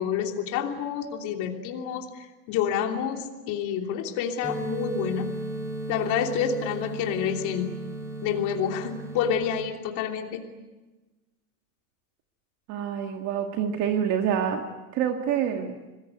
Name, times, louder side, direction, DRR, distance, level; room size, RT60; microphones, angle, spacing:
voice 1, 0.0-5.3 5.9-7.7 8.2-10.4, left 8 dB, 40° left, 3 dB, 3.1 m, -28 dB
sound 1, 4.4-9.4, right 2 dB, 5° right, 3.7 m, -35 dB
voice 2, 12.7-14.7 14.9-15.8, right 8 dB, 40° right, 4 dB, 1.9 m, -26 dB
26.5 x 20.5 x 9.4 m, 1.1 s
supercardioid pair, 155°, 44 cm